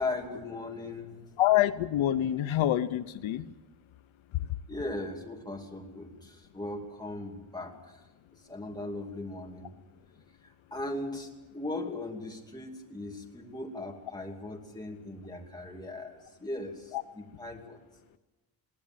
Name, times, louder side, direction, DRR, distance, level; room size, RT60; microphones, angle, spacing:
voice 1, 0.0-1.2 4.7-8.0 8.3-9.7 10.4-17.8, left 2 dB, 10° left, 0 dB, 2.7 m, -38 dB
voice 2, 1.4-3.4, left 13 dB, 80° left, 12 dB, 0.9 m, -26 dB
22.0 x 17.5 x 7.6 m, 1.1 s
wide cardioid pair, 175°, 46 cm